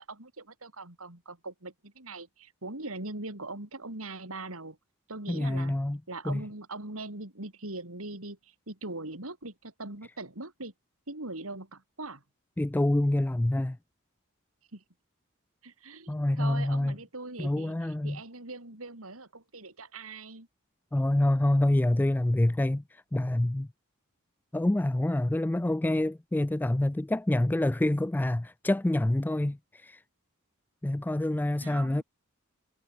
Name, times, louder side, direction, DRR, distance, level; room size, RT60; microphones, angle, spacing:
voice 1, 0.0-4.8 5.1-5.8 6.1-10.7 11.1-12.2 14.7-14.8 15.6-20.5 31.6-32.0, right 2 dB, 75° right, 4.5 m, -41 dB
voice 2, 5.3-6.0 6.3-6.4 12.6-13.8 16.1-16.9 17.4-18.2 20.9-22.8 23.1-23.7 24.5-30.0 30.8-32.0, left 1 dB, 10° left, 0.3 m, -26 dB
head